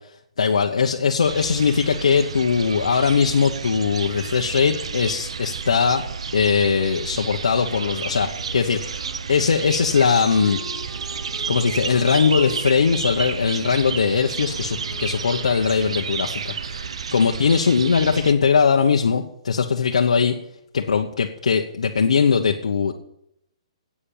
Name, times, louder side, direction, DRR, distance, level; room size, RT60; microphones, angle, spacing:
voice 1, 0.4-6.0 6.3-9.0 9.3-10.6 11.5-16.8 17.1-20.3 20.7-22.9, left 6 dB, 85° left, 2 dB, 1.1 m, -20 dB
sound 1, 1.2-18.3, right 6 dB, 65° right, 0.8 m, -31 dB
Wind instrument woodwind instrument, 7.7-16.1, left 4 dB, 5° left, 3.7 m, -44 dB
10.5 x 8.6 x 8.7 m, 0.79 s
hypercardioid pair, 180°, 3 cm